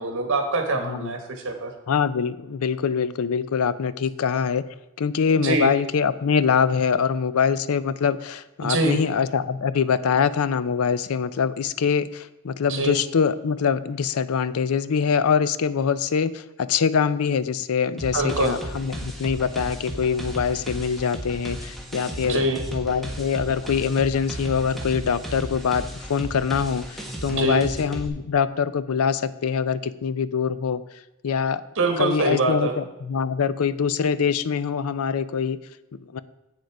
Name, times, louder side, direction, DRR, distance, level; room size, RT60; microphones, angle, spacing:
voice 1, 0.0-1.7 5.4-5.7 8.6-9.0 12.7-12.9 18.1-18.5 22.2-22.6 27.3-27.7 31.8-32.7, right 2 dB, 65° right, 5 dB, 1.5 m, -24 dB
voice 2, 0.8-1.1 1.9-4.6 5.0-22.4 22.7-30.8 31.2-31.6 32.0-35.6 35.9-36.2, left 6 dB, 80° left, 15 dB, 0.5 m, -24 dB
sound 1, 18.0-28.1, right 1 dB, ahead, 1.2 m, -35 dB
8.1 x 6.5 x 4.7 m, 1.0 s
head